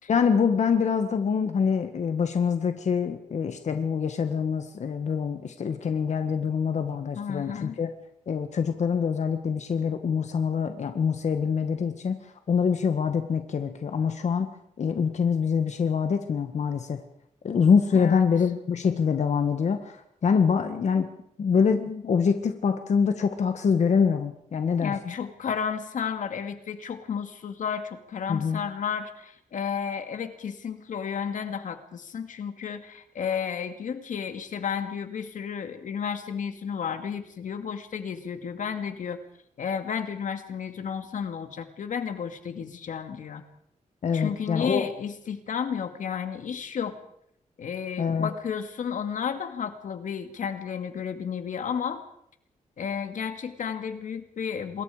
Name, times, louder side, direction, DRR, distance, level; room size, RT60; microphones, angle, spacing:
voice 1, 0.1-7.9 8.3-14.5 14.8-17.0 17.4-21.1 21.4-25.1 28.3-28.6 44.0-44.8 48.0-48.3, left 6 dB, 65° left, 7 dB, 1.7 m, -25 dB
voice 2, 7.2-7.8 17.9-18.3 24.8-39.2 39.6-43.4 44.1-46.9 47.6-52.0 52.8-54.8, left 7 dB, 85° left, 8 dB, 2.3 m, -32 dB
27.0 x 21.5 x 5.1 m, 0.72 s
wide cardioid pair, 130°, 13 cm